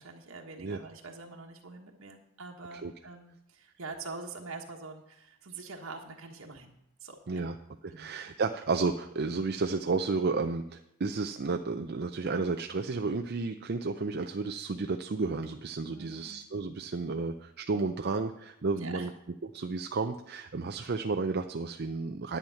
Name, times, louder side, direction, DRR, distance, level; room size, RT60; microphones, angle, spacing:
voice 1, 0.0-6.7 7.0-7.4 7.9-8.1 15.9-16.4 18.7-19.1, right 3 dB, 70° right, 2 dB, 1.4 m, -45 dB
voice 2, 7.8-19.1 19.4-22.4, right 4 dB, 50° right, 6 dB, 0.5 m, -32 dB
10.5 x 8.8 x 5.7 m, 0.81 s
head